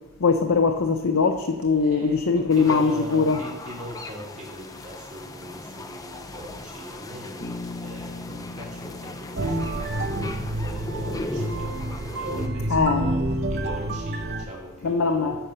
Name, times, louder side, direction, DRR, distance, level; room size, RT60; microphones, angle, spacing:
voice 1, 0.2-3.4 12.7-13.1 14.8-15.4, left 4 dB, 65° left, 6 dB, 0.6 m, -21 dB
voice 2, 1.7-15.5, equal, 30° right, -3 dB, 2.5 m, -40 dB
sound 1, 2.5-12.5, left 2 dB, 15° left, 0.5 m, -38 dB
Bass guitar, 7.4-11.3, left 2 dB, 40° left, 1.0 m, -40 dB
sound 2, 9.4-14.5, right 1 dB, 50° right, 0.7 m, -28 dB
8.9 x 7.0 x 6.7 m, 1.1 s
head